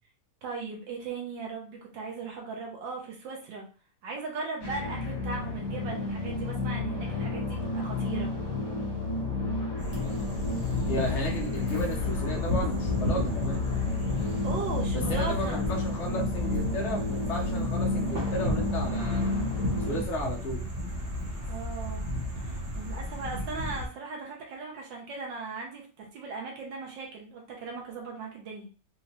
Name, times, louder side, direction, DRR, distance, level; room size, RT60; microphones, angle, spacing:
voice 1, 0.4-3.7 4.0-8.3 14.4-15.6 21.5-22.1 22.4-28.7, right 4 dB, 85° right, 0 dB, 1.6 m, -38 dB
sound 1, 4.6-20.0, left 3 dB, 25° left, 1.0 m, -31 dB
sound 2, 9.8-23.9, equal, 40° right, 1.2 m, -34 dB
voice 2, 10.6-13.6 14.9-19.4 19.8-20.6, left 1 dB, 45° left, 0 dB, 1.1 m, -34 dB
4.3 x 2.7 x 2.9 m, 0.35 s
omnidirectional pair, 1.9 m